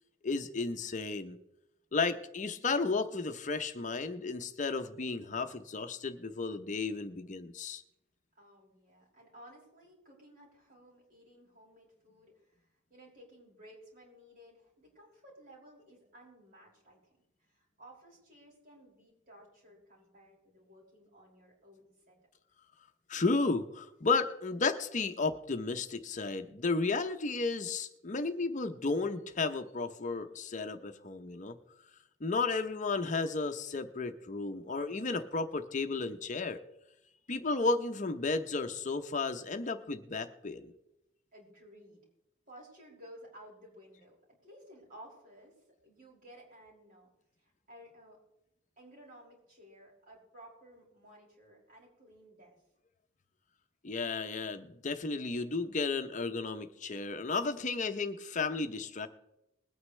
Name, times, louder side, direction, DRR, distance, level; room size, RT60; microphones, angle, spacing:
voice 1, 0.2-1.4 1.9-7.8 23.1-31.6 32.2-36.6 37.3-40.7 53.8-59.1, left 3 dB, 40° left, 8 dB, 0.8 m, -33 dB
voice 2, 8.4-17.1 17.4-22.2 28.1-28.4 41.3-42.0 42.5-45.5 45.8-47.1 47.4-48.2 48.8-52.6, equal, 50° right, -4 dB, 5.7 m, -56 dB
21.0 x 9.5 x 3.2 m, 0.87 s
head